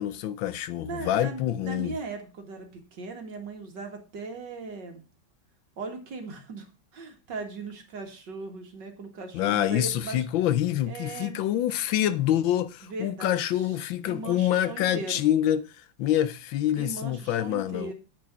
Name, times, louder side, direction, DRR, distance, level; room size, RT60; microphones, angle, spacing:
voice 1, 0.0-1.9 9.3-17.9, left 12 dB, 80° left, 1.4 m, -26 dB
voice 2, 0.8-5.0 5.8-6.7 6.9-10.2 10.9-11.4 12.8-13.7 14.1-15.3 16.8-17.9, right 3 dB, 65° right, 2.5 m, -38 dB
8.6 x 6.3 x 6.0 m
omnidirectional pair, 2.1 m